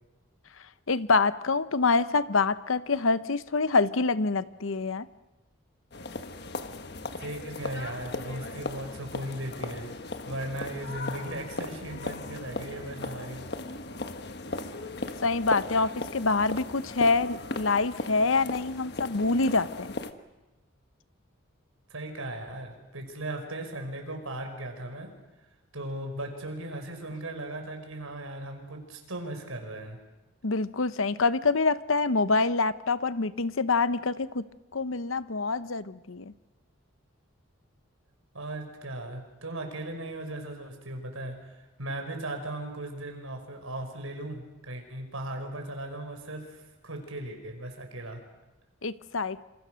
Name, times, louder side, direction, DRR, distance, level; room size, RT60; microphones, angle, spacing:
voice 1, 0.9-5.1 15.2-19.9 30.4-34.4 34.7-36.3 48.8-49.4, left 3 dB, 75° left, 14 dB, 0.9 m, -26 dB
sound 1, 5.9-20.1, left 2 dB, 50° left, 1.4 m, -37 dB
voice 2, 7.2-10.0 10.3-13.5 21.9-25.1 25.7-30.0 38.3-48.2, right 1 dB, 90° right, 5 dB, 5.4 m, -37 dB
27.5 x 27.0 x 6.4 m, 1.1 s
head